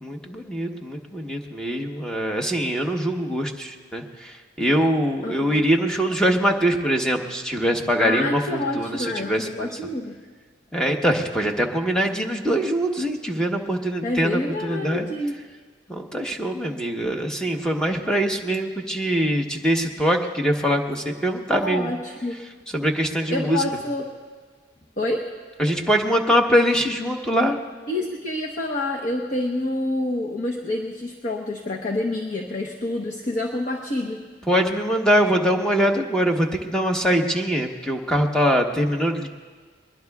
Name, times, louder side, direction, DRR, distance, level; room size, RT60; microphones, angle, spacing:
voice 1, 0.0-9.7 10.7-15.1 15.9-21.9 22.7-23.6 25.6-27.6 34.5-39.3, equal, 5° left, 2 dB, 1.0 m, -23 dB
voice 2, 5.2-5.7 8.0-10.2 14.0-15.4 21.6-22.4 23.3-24.1 25.0-25.3 27.9-34.2, left 2 dB, 45° left, -1 dB, 1.0 m, -27 dB
21.5 x 21.5 x 2.4 m, 1.5 s
head